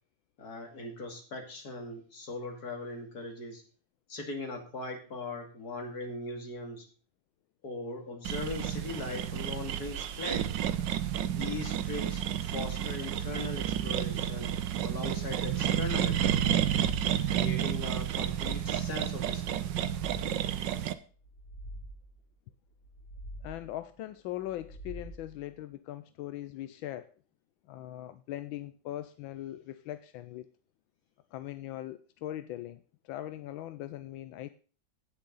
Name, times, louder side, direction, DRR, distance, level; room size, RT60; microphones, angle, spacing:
voice 1, 0.4-3.6 4.1-6.9 7.6-10.6 11.2-14.5 14.8-16.4 17.3-19.7, left 2 dB, 50° left, 3 dB, 3.0 m, -40 dB
sound 1, 8.2-20.9, right 10 dB, 70° right, 1.4 m, -31 dB
sound 2, 21.2-22.3 22.7-23.8 24.4-25.5, right 1 dB, 90° right, 3.0 m, -46 dB
voice 2, 23.4-27.1 27.7-30.5 31.3-34.5, left 13 dB, 85° left, 12 dB, 1.4 m, -40 dB
17.0 x 6.5 x 4.0 m, 0.39 s
omnidirectional pair, 2.1 m